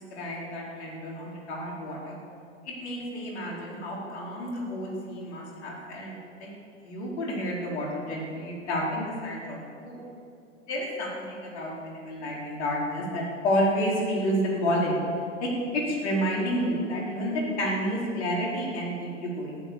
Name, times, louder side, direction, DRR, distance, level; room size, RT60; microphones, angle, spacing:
voice 1, 0.0-2.2 2.6-6.5 6.8-10.0 10.7-14.9 15.4-19.6, equal, 60° left, -3 dB, 4.8 m, -30 dB
14.5 x 12.0 x 7.2 m, 2.5 s
hypercardioid pair, 115°, 38 cm